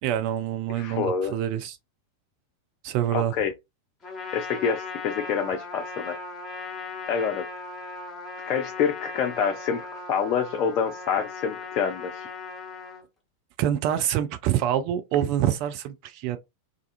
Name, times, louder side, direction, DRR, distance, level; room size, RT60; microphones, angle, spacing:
voice 1, 0.0-1.8 2.8-3.3 13.6-16.4, right 11 dB, 45° right, 0.4 m, -26 dB
voice 2, 0.8-1.3 3.1-3.5 4.3-6.2 7.1-7.4 8.5-12.3, left 7 dB, 40° left, 0.4 m, -27 dB
Trumpet, 4.0-13.0, left 3 dB, 15° left, 1.0 m, -38 dB
2.4 x 2.3 x 2.4 m
figure-of-eight pair, 90°, 0 cm